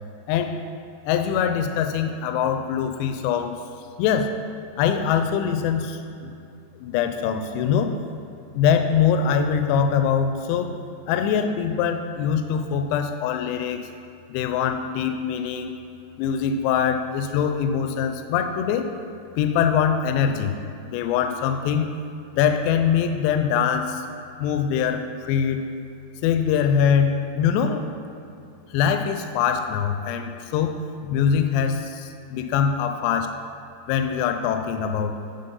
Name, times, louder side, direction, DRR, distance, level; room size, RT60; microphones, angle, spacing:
voice 1, 1.1-3.6 4.0-4.3 4.8-6.3 6.8-8.0 8.5-10.8 11.1-13.9 14.3-15.8 16.2-18.9 19.4-20.6 20.9-21.9 22.3-24.1 24.4-25.7 26.2-27.8 28.7-30.8 31.0-33.3 33.9-35.2, left 7 dB, 85° left, 7 dB, 2.6 m, -23 dB
9.1 x 4.0 x 5.3 m, 2.6 s
omnidirectional pair, 5.2 m